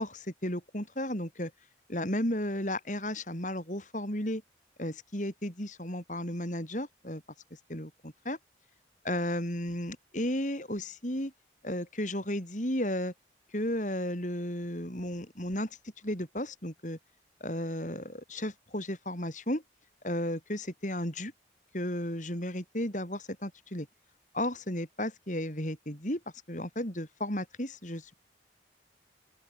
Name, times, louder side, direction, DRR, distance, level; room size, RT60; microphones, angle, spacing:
voice 1, 0.0-1.5 1.9-4.4 4.8-7.2 7.7-8.4 9.0-11.3 11.6-13.1 13.5-15.7 16.0-17.0 17.4-19.6 20.0-21.3 21.7-23.9 24.3-26.2 26.5-28.2, left 1 dB, 45° left, 7.9 m, -34 dB
open air
head